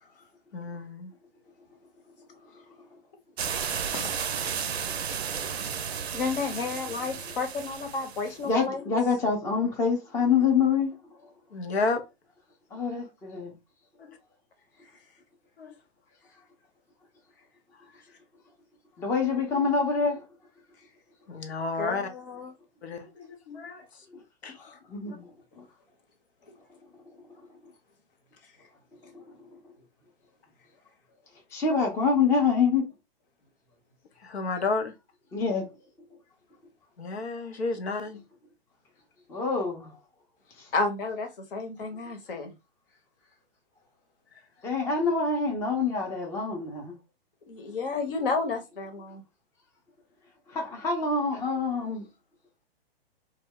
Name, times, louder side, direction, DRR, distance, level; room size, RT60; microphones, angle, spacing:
voice 1, 0.5-1.1 11.5-12.0 14.0-14.2 15.6-15.7 21.3-22.1 22.8-23.9 24.4-24.6 34.2-34.9 37.0-38.2, left 3 dB, 85° left, 0.7 m, -31 dB
sound 1, 3.4-8.4, right 7 dB, 80° right, 0.5 m, -33 dB
voice 2, 6.1-8.8 21.8-22.5 24.6-24.8 40.7-42.5 47.5-49.2, left 4 dB, 60° left, 0.9 m, -31 dB
voice 3, 8.4-10.9 12.7-13.5 19.0-20.2 24.9-25.3 25.6-25.7 29.0-29.3 31.5-32.9 35.3-35.7 39.3-40.0 40.6-40.7 44.6-46.9 50.5-52.1, left 5 dB, 10° left, 0.5 m, -26 dB
2.2 x 2.0 x 3.5 m
hypercardioid pair, 125°, 31 cm